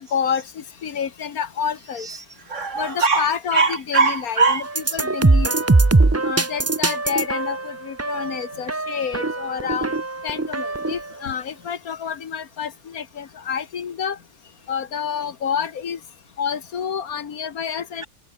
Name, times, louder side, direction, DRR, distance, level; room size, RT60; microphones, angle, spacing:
voice 1, 0.0-2.1 2.8-4.6 4.9-5.5 6.2-9.9 10.2-14.2 14.7-16.0 16.4-18.0, left 7 dB, 80° left, 1.8 m, -28 dB
voice 2, 2.0-5.0, right 4 dB, 60° right, 2.5 m, -22 dB
sound 1, 4.7-11.1, right 3 dB, 20° right, 0.4 m, -21 dB
omnidirectional pair, 1.5 m